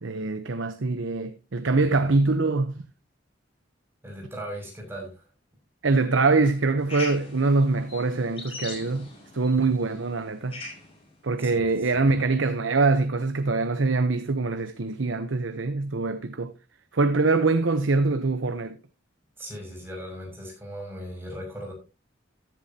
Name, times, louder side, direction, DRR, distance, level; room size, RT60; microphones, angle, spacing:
voice 1, 0.0-2.8 5.8-10.6 11.2-16.5 16.9-18.8, right 3 dB, 80° right, 0.9 m, -24 dB
voice 2, 1.6-2.0 4.0-5.3 11.4-12.1 19.4-21.7, equal, 10° right, 6.2 m, -39 dB
sound 1, 6.8-11.0, left 3 dB, 30° left, 5.6 m, -41 dB
14.5 x 10.5 x 2.8 m
head